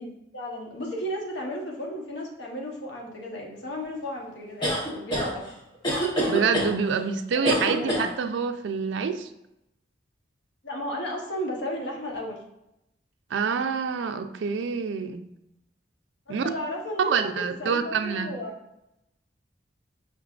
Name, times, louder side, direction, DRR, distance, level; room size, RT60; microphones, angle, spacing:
voice 1, 0.0-5.4 7.5-7.9 10.6-12.4 16.3-18.6, equal, 70° left, -1 dB, 1.0 m, -34 dB
sound 1, 4.6-5.3 5.8-6.7 7.4-8.1, equal, 25° left, 0.9 m, -25 dB
voice 2, 6.3-9.3 13.3-15.2 16.3-16.4 17.0-18.3, right 6 dB, 85° right, 8 dB, 0.3 m, -27 dB
5.3 x 3.5 x 2.4 m, 0.85 s
head